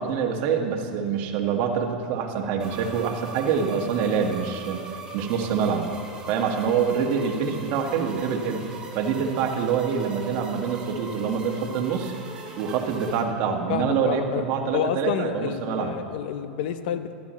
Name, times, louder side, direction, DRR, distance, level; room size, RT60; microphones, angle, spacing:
voice 1, 0.0-4.9 5.1-5.9 6.3-8.6 8.9-12.1 12.6-15.9, right 6 dB, 50° right, 2 dB, 1.6 m, -25 dB
sound 1, 2.6-13.2, right 3 dB, 15° right, 2.5 m, -40 dB
voice 2, 13.7-14.4 14.7-17.1, left 9 dB, 65° left, 10 dB, 0.8 m, -29 dB
14.5 x 12.0 x 3.2 m, 2.8 s
supercardioid pair, 130°, 5 cm